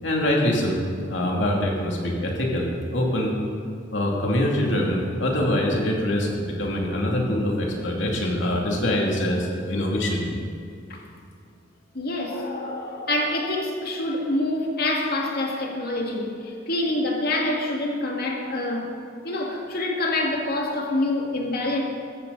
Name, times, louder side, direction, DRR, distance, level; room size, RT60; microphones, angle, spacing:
voice 1, 0.0-0.8 1.1-3.3 3.9-10.2, left 1 dB, 80° left, -1 dB, 2.5 m, -24 dB
voice 2, 11.9-18.9 19.2-21.8, left 2 dB, 55° left, 0 dB, 2.2 m, -26 dB
14.5 x 14.0 x 4.0 m, 2.4 s
head